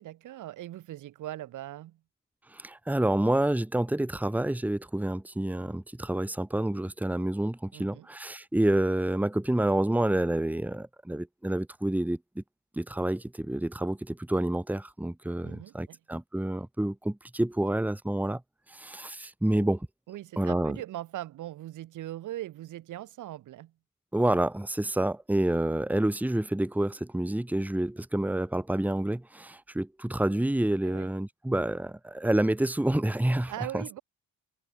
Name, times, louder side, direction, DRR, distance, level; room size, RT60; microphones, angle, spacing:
voice 1, 0.0-2.0 7.7-8.1 15.4-16.0 19.5-19.7 20.1-23.7 30.8-31.1 33.4-34.0, right 14 dB, 85° right, 5.6 m, -40 dB
voice 2, 2.5-12.4 12.7-18.4 18.7-19.8 20.4-20.8 24.1-33.8, right 1 dB, 5° right, 1.7 m, -28 dB
cardioid pair, 90°, 30 cm